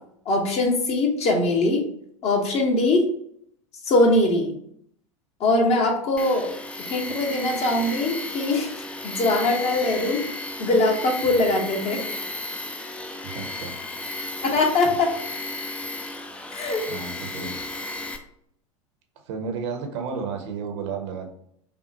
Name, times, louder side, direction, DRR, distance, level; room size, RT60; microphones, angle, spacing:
voice 1, 0.3-1.9 2.2-3.1 3.9-4.5 5.4-6.5 6.8-8.7 9.0-12.0 14.4-15.1 16.5-16.8, left 2 dB, 40° left, 1 dB, 1.1 m, -22 dB
Tools, 6.2-18.2, left 2 dB, 5° left, 0.4 m, -34 dB
voice 2, 13.2-13.7 16.1-16.2 16.9-17.6 19.3-21.3, right 5 dB, 55° right, 4 dB, 0.8 m, -32 dB
5.3 x 2.3 x 2.8 m, 0.69 s
figure-of-eight pair, 80°, 17 cm